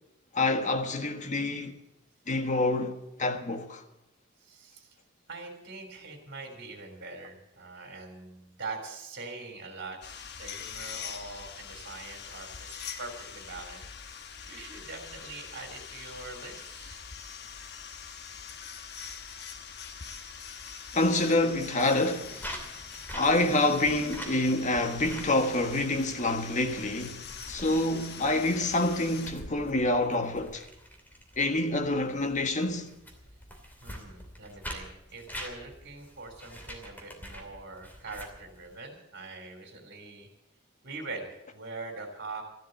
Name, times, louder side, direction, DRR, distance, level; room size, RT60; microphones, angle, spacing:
voice 1, 0.3-1.7 2.3-3.8 20.9-22.4 23.1-30.6 31.4-32.9, left 2 dB, 40° left, 1.5 m, -27 dB
voice 2, 4.4-5.0 5.3-10.1 10.4-13.8 14.4-17.0 33.8-40.3 40.8-42.4, right 3 dB, 55° right, 3.3 m, -43 dB
sound 1, 10.0-29.3, left 7 dB, 55° left, 1.2 m, -43 dB
sound 2, 22.4-38.7, equal, 10° left, 2.7 m, -46 dB
14.0 x 12.5 x 7.8 m
head